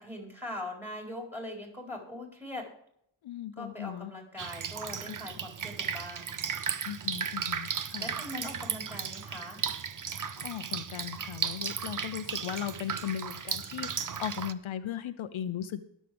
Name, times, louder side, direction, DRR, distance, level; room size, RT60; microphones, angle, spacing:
voice 1, 0.0-2.7 3.6-6.3 8.0-9.7, left 1 dB, 5° right, -1 dB, 4.3 m, -41 dB
voice 2, 3.2-4.1 6.9-8.2 10.1-15.9, left 10 dB, 80° left, 10 dB, 0.8 m, -37 dB
Drip, 4.4-14.5, right 7 dB, 40° right, 0.7 m, -35 dB
22.0 x 7.5 x 3.5 m, 0.73 s
wide cardioid pair, 95°, 47 cm